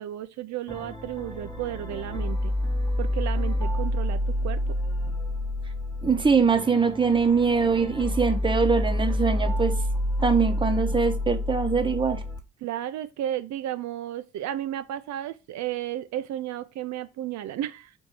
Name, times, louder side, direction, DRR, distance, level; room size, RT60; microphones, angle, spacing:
voice 1, 0.0-2.5 3.0-4.6 12.6-17.9, right 12 dB, 65° right, 0.4 m, -33 dB
sound 1, 0.7-12.4, left 1 dB, 15° left, 1.0 m, -28 dB
voice 2, 6.0-9.7 10.2-12.2, right 5 dB, 15° right, 0.8 m, -23 dB
4.4 x 2.6 x 4.6 m
cardioid pair, 90°, 30 cm